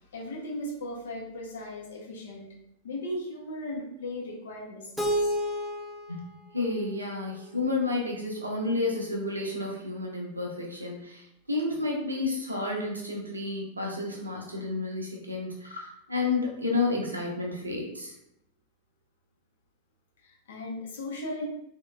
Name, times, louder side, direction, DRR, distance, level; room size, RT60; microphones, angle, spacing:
voice 1, 0.1-2.5 2.8-5.4 20.2-21.4, left 1 dB, 65° left, -2 dB, 0.9 m, -37 dB
Keyboard (musical), 5.0-7.9, equal, ahead, 0.5 m, -32 dB
voice 2, 6.5-18.1, left 3 dB, 80° right, 0 dB, 0.7 m, -31 dB
sound 1, 12.4-12.8 15.6-15.9, left 2 dB, 85° left, 1.0 m, -43 dB
3.7 x 2.8 x 2.3 m, 0.77 s
figure-of-eight pair, 90°, 0 cm